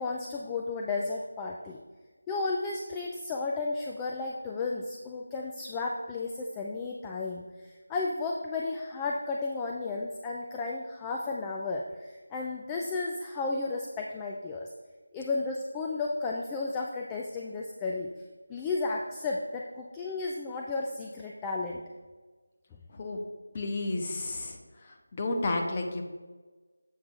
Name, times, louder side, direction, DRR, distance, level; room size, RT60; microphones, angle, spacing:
voice 1, 0.0-1.8 2.3-14.7 15.1-18.1 18.5-21.8, left 3 dB, 10° left, 0 dB, 0.3 m, -33 dB
voice 2, 22.9-23.2 23.5-26.0, left 2 dB, 30° left, 2 dB, 0.8 m, -32 dB
7.4 x 5.2 x 4.4 m, 1.3 s
figure-of-eight pair, 170°, 0 cm